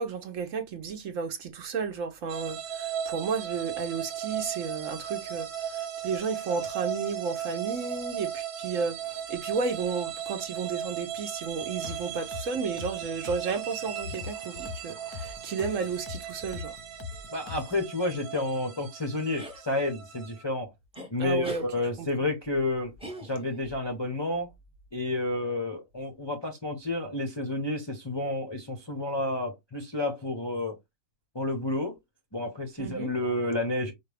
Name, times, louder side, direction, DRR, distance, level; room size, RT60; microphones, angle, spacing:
voice 1, 0.0-16.7 21.2-21.6 22.0-22.1 32.8-33.1, right 5 dB, 60° right, 1.0 m, -33 dB
sound 1, 2.3-20.4, right 9 dB, 80° right, 1.3 m, -37 dB
sound 2, 11.5-17.8, left 6 dB, 85° left, 1.2 m, -42 dB
voice 2, 17.3-20.7 21.1-22.9 23.2-24.5 24.9-30.8 31.3-32.0 32.3-33.9, left 2 dB, 25° left, 0.6 m, -30 dB
sound 3, 19.4-19.6 20.9-21.1 21.4-21.7 23.0-23.7, equal, 5° right, 0.8 m, -40 dB
5.0 x 2.3 x 3.3 m
omnidirectional pair, 1.6 m